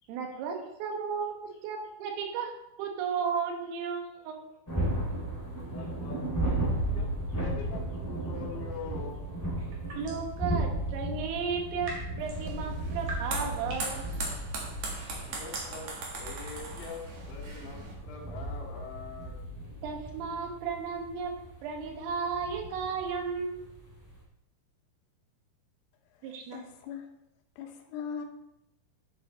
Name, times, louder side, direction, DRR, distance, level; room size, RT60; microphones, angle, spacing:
voice 1, 0.1-1.4 1.6-4.5 10.0-11.9 12.2-14.1 19.8-21.3 21.6-23.7 26.2-26.7, right 6 dB, 80° right, 3 dB, 4.0 m, -34 dB
sound 1, 4.7-24.2, right 1 dB, 10° left, 0.8 m, -35 dB
voice 2, 5.6-9.2 15.3-19.4, left 5 dB, 65° left, -4 dB, 3.9 m, -44 dB
sound 2, 9.6-10.4 11.5-19.2, right 1 dB, 45° right, 2.4 m, -47 dB
sound 3, 12.2-17.9, right 3 dB, 60° right, 2.0 m, -39 dB
voice 3, 26.2-27.1 27.6-28.3, left 7 dB, 80° left, 4 dB, 3.5 m, -40 dB
10.5 x 7.5 x 4.2 m, 0.87 s
omnidirectional pair, 5.9 m